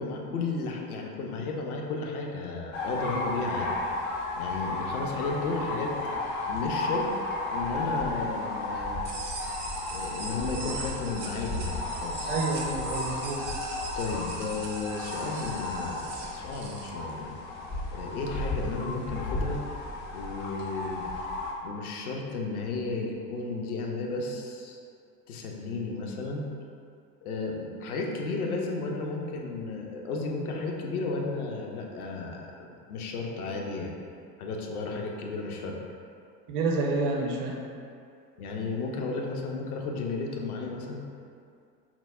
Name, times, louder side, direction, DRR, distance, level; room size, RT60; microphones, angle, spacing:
voice 1, 0.0-3.7 4.4-5.9 6.5-7.1 7.5-9.0 9.9-12.3 14.0-17.3 17.9-19.6 20.1-21.0 21.6-24.8 25.3-26.5 27.2-33.9 34.4-35.8 38.4-41.1, left 3 dB, 65° left, 0 dB, 0.6 m, -33 dB
sound 1, 2.7-21.5, left 2 dB, 25° left, 0.4 m, -33 dB
sound 2, 9.0-16.9, right 4 dB, 85° right, 0.6 m, -41 dB
voice 2, 12.3-13.5 36.5-37.6, right 3 dB, 35° right, 0 dB, 0.5 m, -29 dB
5.7 x 2.0 x 2.3 m, 2.4 s
figure-of-eight pair, 75°, 48 cm